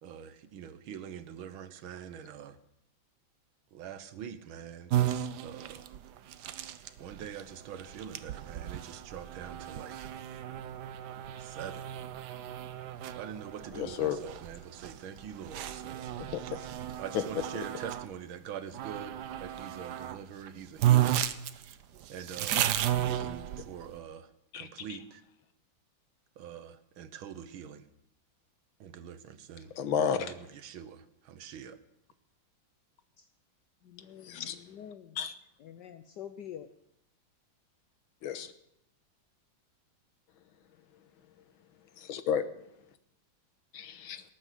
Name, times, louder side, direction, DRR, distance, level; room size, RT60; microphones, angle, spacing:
voice 1, 0.0-2.6 3.7-5.9 7.0-10.0 11.4-11.9 13.1-16.3 17.0-21.2 21.5-21.8 22.1-25.2 26.4-27.9 28.8-29.7 30.1-31.8, right 8 dB, 85° right, 1.8 m, -44 dB
sound 1, 4.9-18.1 18.7-20.2 20.5-20.6 20.8-23.9, right 12 dB, 65° right, 1.2 m, -33 dB
voice 2, 13.7-14.2 16.2-16.6 17.1-17.2 24.5-24.7 29.8-30.3 34.2-34.6 35.2-35.3 38.2-38.5 42.1-42.4 43.7-44.2, left 8 dB, 85° left, 1.9 m, -31 dB
voice 3, 33.8-35.1 35.6-36.7, left 9 dB, 65° left, 1.2 m, -46 dB
19.0 x 8.9 x 7.5 m
omnidirectional pair, 2.2 m